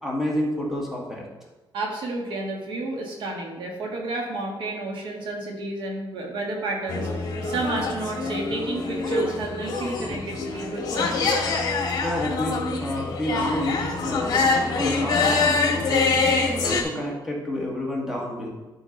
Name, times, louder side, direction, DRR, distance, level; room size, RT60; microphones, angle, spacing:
voice 1, 0.0-1.2 12.0-16.1 16.5-18.5, left 1 dB, 5° right, -3 dB, 1.8 m, -29 dB
voice 2, 1.7-11.2, right 2 dB, 70° right, 0 dB, 1.7 m, -31 dB
sound 1, 6.9-16.8, left 3 dB, 50° left, 1.7 m, -25 dB
11.5 x 5.2 x 3.9 m, 1.2 s
cardioid pair, 145°, 9 cm